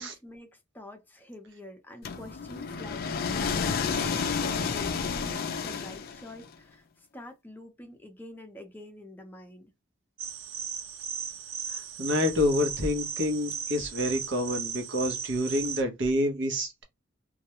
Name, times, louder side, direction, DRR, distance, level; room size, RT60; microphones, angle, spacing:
voice 1, 0.0-9.7, left 1 dB, 10° left, 0.6 m, -46 dB
sound 1, 2.0-6.4, left 5 dB, 50° left, 0.4 m, -30 dB
sound 2, 10.2-15.8, right 7 dB, 80° right, 0.3 m, -36 dB
voice 2, 11.7-16.8, left 1 dB, 60° right, 0.8 m, -28 dB
2.3 x 2.1 x 2.8 m
head